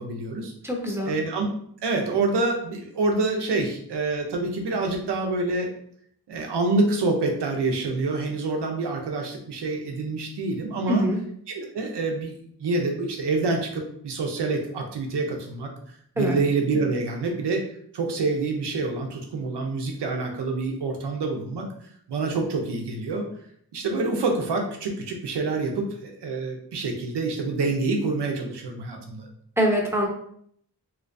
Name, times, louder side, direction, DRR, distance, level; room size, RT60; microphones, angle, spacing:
voice 1, 0.0-0.5 1.0-1.5 1.8-5.7 6.3-11.0 11.5-12.3 12.6-15.7 16.2-17.6 17.9-21.6 22.1-23.3 23.7-29.3, right 3 dB, 85° right, 2 dB, 0.8 m, -27 dB
voice 2, 0.6-1.2 10.9-11.2 16.2-16.4 29.6-30.1, equal, 5° right, -1 dB, 0.9 m, -23 dB
3.2 x 3.0 x 2.6 m, 0.65 s
cardioid pair, 70°, 40 cm